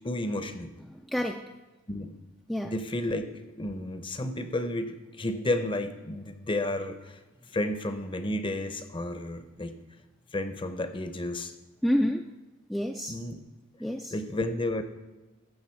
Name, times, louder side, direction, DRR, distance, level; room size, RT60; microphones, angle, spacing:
voice 1, 0.0-0.7 1.9-2.1 2.6-7.2 7.5-9.8 10.3-11.5 13.1-13.4 14.1-14.8, left 1 dB, 25° left, 10 dB, 0.7 m, -32 dB
voice 2, 0.9-1.4 2.5-2.7 11.8-12.3 12.7-13.1 13.8-14.1, equal, ahead, 2 dB, 0.4 m, -28 dB
14.5 x 6.5 x 4.5 m, 1.1 s
head